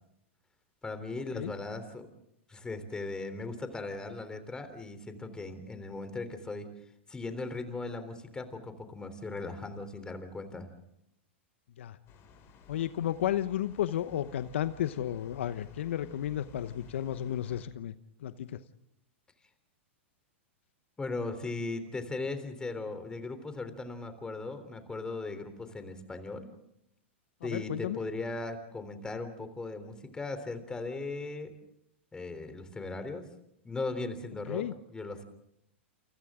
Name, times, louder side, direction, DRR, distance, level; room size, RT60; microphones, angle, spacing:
voice 1, 0.8-2.1 2.5-6.7 7.1-10.7 21.0-26.5 27.4-31.5 32.1-33.3 33.6-35.2, left 3 dB, 10° left, 9 dB, 3.6 m, -38 dB
sound 1, 12.1-17.6, left 5 dB, 35° left, 6.1 m, -55 dB
voice 2, 12.7-17.9 18.2-18.6 27.4-28.0 34.5-34.7, left 11 dB, 70° left, 12 dB, 1.0 m, -33 dB
29.5 x 29.0 x 3.8 m, 0.78 s
hypercardioid pair, 115°, 7 cm